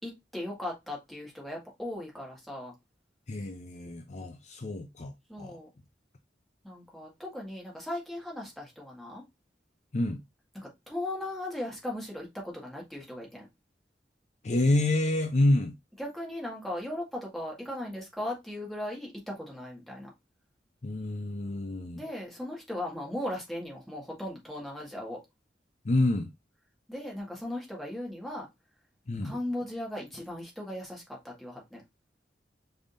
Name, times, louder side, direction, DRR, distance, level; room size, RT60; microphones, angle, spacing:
voice 1, 0.0-2.7 5.3-5.7 6.6-9.2 10.6-13.5 16.0-20.1 21.9-25.2 26.9-28.5 29.2-31.8, left 1 dB, ahead, 1.8 m, -37 dB
voice 2, 3.3-5.1 5.4-5.6 9.9-10.2 14.4-15.8 20.8-22.0 25.8-26.3 29.1-29.3, left 2 dB, 40° left, 0.5 m, -28 dB
5.3 x 3.4 x 2.6 m
head